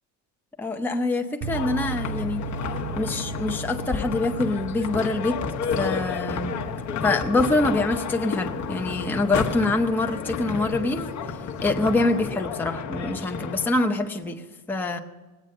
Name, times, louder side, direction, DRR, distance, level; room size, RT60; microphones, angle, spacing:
voice 1, 0.6-2.4 3.0-5.4 5.8-6.6 7.0-11.1 11.6-14.4 14.7-15.0, left 2 dB, 5° left, 4 dB, 0.7 m, -25 dB
sound 1, 1.4-12.2, right 4 dB, 60° right, 0.8 m, -38 dB
sound 2, 1.5-13.7, left 6 dB, 40° left, 1.1 m, -31 dB
20.0 x 8.8 x 6.5 m, 1.2 s
cardioid pair, 160°, 43 cm